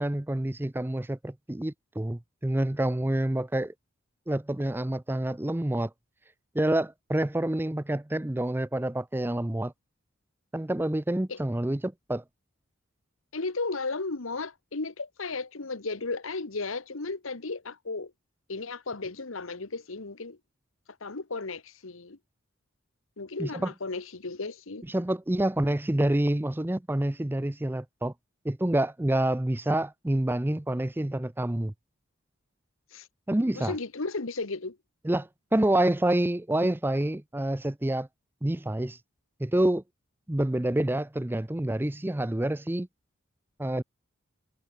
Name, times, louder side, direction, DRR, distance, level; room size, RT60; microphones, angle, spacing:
voice 1, 0.0-3.7 4.3-5.9 6.5-9.7 10.5-12.2 23.4-23.7 24.9-28.1 28.4-31.7 33.3-33.7 35.0-38.1 38.4-39.0 39.4-39.8 40.3-42.9 43.6-43.8, right 1 dB, 10° right, 0.5 m, -27 dB
voice 2, 13.3-18.1 18.5-20.4 21.0-22.2 23.2-24.8 32.9-33.1 33.5-34.8, left 3 dB, 70° left, 1.3 m, -34 dB
head